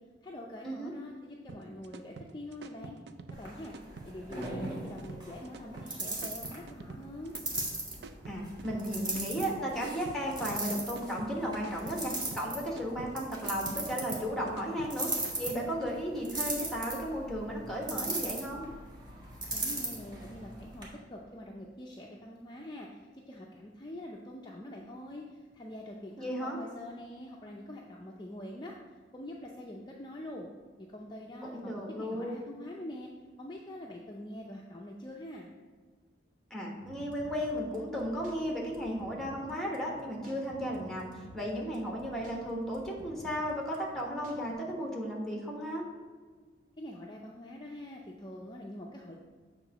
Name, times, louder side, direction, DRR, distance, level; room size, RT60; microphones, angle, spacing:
voice 1, 0.2-3.0 3.3-3.7 4.0-7.3 19.5-28.8 29.1-30.5 30.8-33.1 33.4-35.5 46.8-49.2, left 1 dB, 25° left, -1 dB, 0.5 m, -44 dB
sound 1, 1.5-15.9, right 3 dB, 70° right, 0.4 m, -47 dB
sound 2, 3.3-20.8, right 2 dB, 25° right, 1.4 m, -39 dB
voice 2, 8.3-15.1 15.4-18.7 26.2-26.6 31.4-32.3 36.5-45.8, equal, ahead, -1 dB, 1.2 m, -35 dB
sound 3, 36.8-44.5, equal, 45° right, 1.1 m, -53 dB
7.4 x 3.7 x 5.9 m, 1.5 s
head